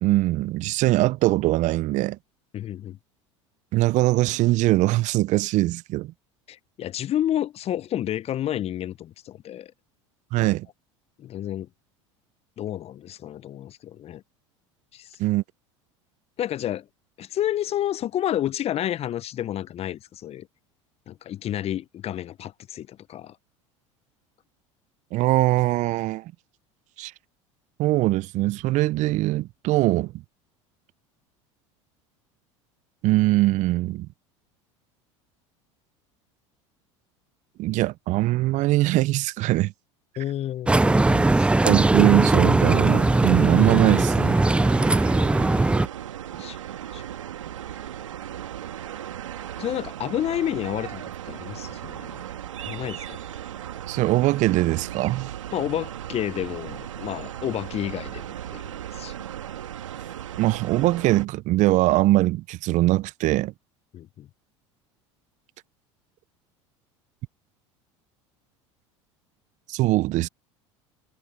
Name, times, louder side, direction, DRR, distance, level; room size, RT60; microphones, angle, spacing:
voice 1, 0.0-2.2 3.7-6.1 10.3-10.7 15.2-15.4 25.1-26.2 27.0-27.1 27.8-30.1 33.0-34.1 37.6-39.7 41.6-44.3 53.9-55.3 60.4-63.5 69.7-70.3, right 18 dB, 50° right, 0.6 m, -22 dB
voice 2, 2.5-3.0 6.5-9.7 10.4-10.5 11.2-11.7 12.6-14.2 14.9-15.2 16.4-16.9 17.2-20.5 21.1-23.4 40.2-41.6 46.4-46.6 46.9-47.0 49.6-52.2 52.7-53.2 55.5-58.3 58.5-59.1 63.9-64.3, left 11 dB, 40° left, 0.8 m, -30 dB
sound 1, 40.7-45.9, right 2 dB, 5° right, 0.4 m, -19 dB
sound 2, 42.6-61.3, right 11 dB, 85° right, 2.8 m, -37 dB
hypercardioid pair, 80°, 16 cm